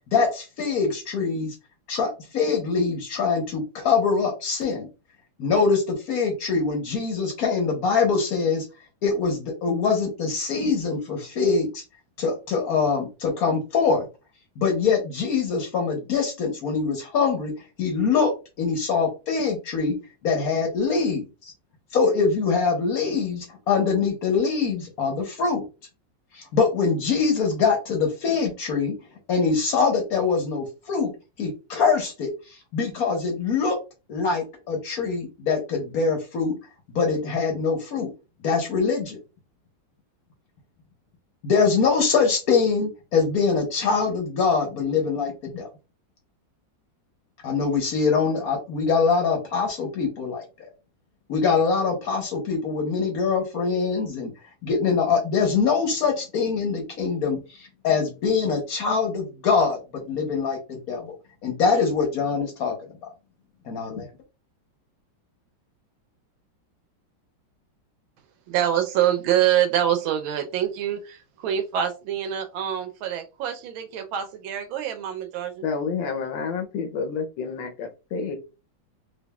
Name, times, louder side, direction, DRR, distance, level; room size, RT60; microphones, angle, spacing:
voice 1, 0.1-1.5 1.9-4.9 5.4-8.6 9.0-11.8 12.2-14.1 14.6-17.5 17.8-18.3 18.6-19.9 20.2-21.5 21.9-25.6 26.3-28.9 29.3-31.1 31.4-33.8 34.1-36.5 36.9-38.1 38.4-39.2 41.4-45.7 47.4-50.4 51.3-54.3 54.6-61.1 61.4-62.7 63.0-63.1 63.7-64.1, left 5 dB, 60° left, 1.1 m, -23 dB
voice 2, 68.5-75.6, right 10 dB, 90° right, 1.5 m, -25 dB
voice 3, 75.6-78.4, left 5 dB, 75° left, 1.4 m, -29 dB
5.0 x 2.3 x 2.3 m
omnidirectional pair, 2.1 m